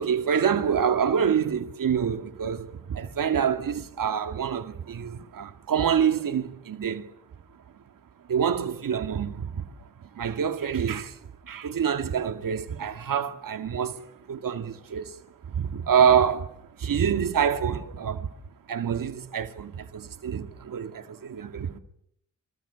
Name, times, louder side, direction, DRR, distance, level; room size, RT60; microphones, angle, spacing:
voice 1, 0.0-7.1 8.3-9.7 10.0-11.2 11.4-14.0 14.3-15.2 15.4-16.5 16.8-18.3 18.7-21.8, right 7 dB, 80° right, 2.3 m, -26 dB
27.5 x 25.5 x 7.0 m
wide cardioid pair, 130°, 32 cm